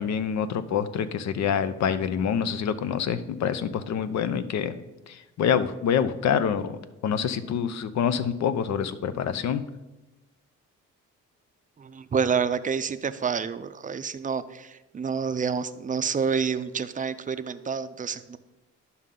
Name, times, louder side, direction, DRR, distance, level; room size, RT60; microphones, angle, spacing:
voice 1, 0.0-4.7 5.1-9.6, left 7 dB, 65° left, 13 dB, 0.6 m, -26 dB
voice 2, 12.1-14.4 14.9-18.4, right 6 dB, 25° right, 12 dB, 0.5 m, -28 dB
11.0 x 5.6 x 3.8 m, 1.0 s
cardioid pair, 90°, 30 cm